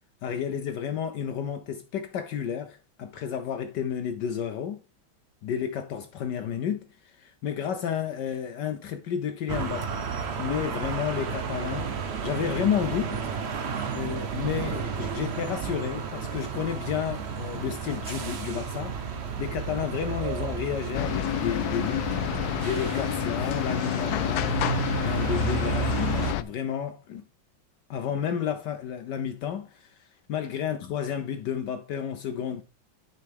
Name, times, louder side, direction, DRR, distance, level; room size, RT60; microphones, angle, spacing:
voice 1, 0.2-4.8 5.4-10.0 10.4-13.3 13.9-22.1 22.3-24.6 25.0-27.2 27.9-32.6, left 8 dB, 70° left, 1.1 m, -31 dB
sound 1, 9.5-26.3, right 6 dB, 75° right, 0.5 m, -32 dB
sound 2, 20.9-26.4, left 12 dB, 85° left, 0.8 m, -29 dB
9.4 x 5.6 x 3.5 m
omnidirectional pair, 2.2 m